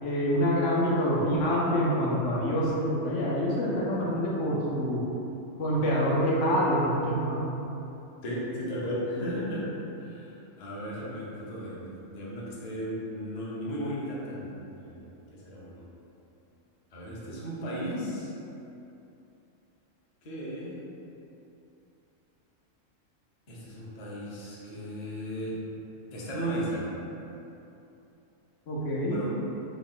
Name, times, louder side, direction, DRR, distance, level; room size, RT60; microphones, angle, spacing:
voice 1, 0.0-5.0 5.6-7.5 28.7-29.2, equal, 70° left, -5 dB, 1.0 m, -26 dB
voice 2, 8.2-15.8 16.9-18.3 20.2-20.8 23.5-25.6 26.1-26.9 29.1-29.3, equal, 45° left, -6 dB, 0.6 m, -35 dB
3.6 x 2.3 x 3.7 m, 2.9 s
omnidirectional pair, 1.4 m